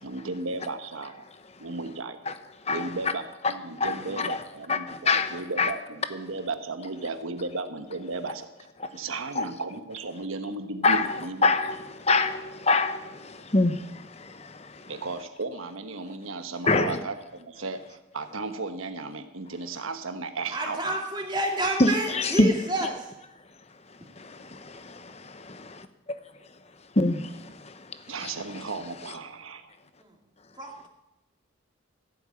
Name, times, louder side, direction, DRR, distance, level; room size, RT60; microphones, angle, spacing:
voice 1, 0.0-1.3 1.6-2.2 2.7-11.5 14.9-20.8 28.1-29.7, right 3 dB, 85° right, 1.2 m, -35 dB
voice 2, 3.8-4.4 4.7-5.7 8.8-8.9 9.3-9.4 10.8-11.1 11.4-14.9 16.7-17.0 21.8-22.5 24.2-25.9 27.0-28.3, left 3 dB, 30° left, 0.9 m, -26 dB
voice 3, 20.5-23.0 30.6-30.9, right 1 dB, 20° right, 2.2 m, -29 dB
14.5 x 8.1 x 8.6 m
head